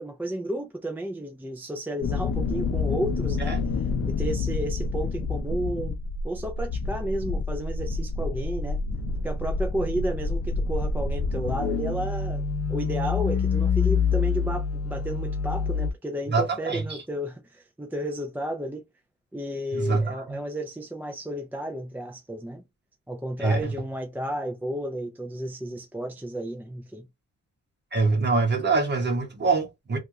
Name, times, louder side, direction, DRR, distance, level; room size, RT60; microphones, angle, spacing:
voice 1, 0.0-3.6 4.1-6.0 6.2-8.8 9.2-12.4 12.7-18.8 19.3-22.6 23.1-27.1, right 1 dB, 5° right, 0.4 m, -32 dB
sound 1, 2.0-15.9, left 4 dB, 45° left, 0.6 m, -27 dB
voice 2, 16.3-17.0 19.7-20.4 23.4-23.7 27.9-30.0, right 3 dB, 30° right, 1.2 m, -24 dB
3.3 x 2.4 x 2.8 m
wide cardioid pair, 135°, 33 cm